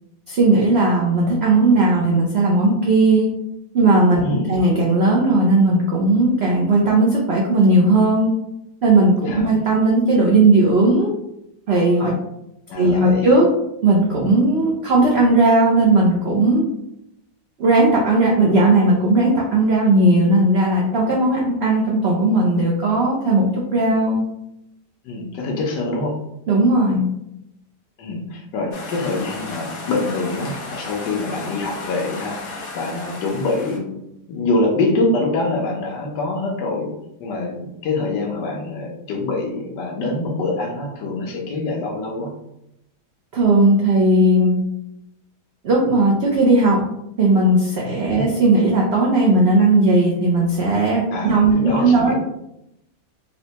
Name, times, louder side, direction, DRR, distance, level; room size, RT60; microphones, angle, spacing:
voice 1, 0.3-3.3 3.7-4.2 4.5-8.3 8.8-11.1 11.7-12.1 12.7-13.5 13.8-16.6 17.6-24.2 26.5-27.0 43.3-44.6 45.6-46.8 47.2-52.1, right 2 dB, 90° right, -3 dB, 0.5 m, -16 dB
voice 2, 4.2-4.6 9.3-9.5 12.7-13.3 25.0-26.2 28.0-33.9 34.3-36.9 37.2-42.3 48.1-48.3 51.1-52.1, left 2 dB, 85° left, 0 dB, 1.4 m, -25 dB
sound 1, 28.7-33.8, left 3 dB, 60° left, 1.2 m, -34 dB
4.2 x 2.1 x 2.8 m, 0.82 s
omnidirectional pair, 1.8 m